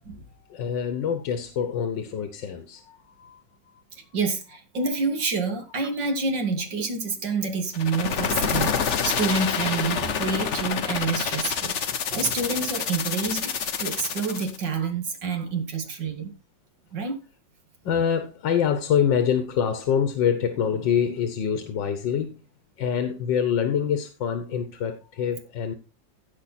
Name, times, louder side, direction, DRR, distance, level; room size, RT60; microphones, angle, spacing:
voice 1, 0.5-3.8 17.8-22.4 22.8-25.7, left 8 dB, 90° left, 1.8 m, -25 dB
voice 2, 4.1-11.8 12.1-16.3 16.9-17.2, right 4 dB, 75° right, 2.7 m, -28 dB
sound 1, 7.7-14.6, left 7 dB, 50° left, 1.1 m, -27 dB
15.5 x 5.5 x 4.3 m
omnidirectional pair, 1.9 m